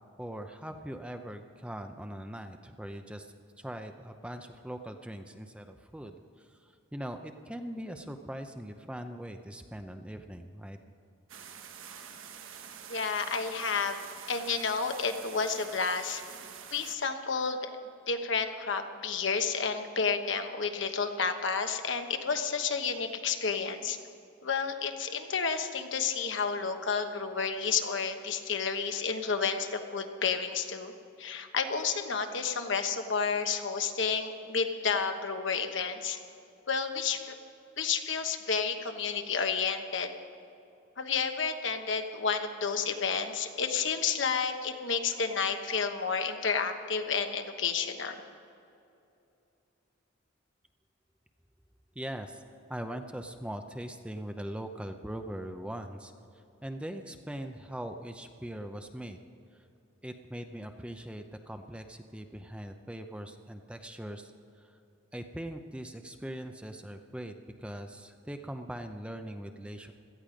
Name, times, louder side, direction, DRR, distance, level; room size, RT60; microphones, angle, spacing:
voice 1, 0.2-10.8 52.0-52.4 52.7-56.1 56.6-59.2 59.5-59.6 60.0-64.8 65.1-67.3 67.6-69.9, right 1 dB, 5° right, 6 dB, 0.6 m, -41 dB
sound 1, 11.3-17.0, right 7 dB, 85° right, 1.1 m, -46 dB
voice 2, 12.9-14.0 14.3-16.2 16.7-17.7 18.1-24.0 24.4-30.9 31.2-36.2 36.7-37.3 37.8-40.1 41.0-48.2, left 5 dB, 65° left, 6 dB, 1.1 m, -31 dB
17.5 x 13.0 x 5.1 m, 2.7 s
head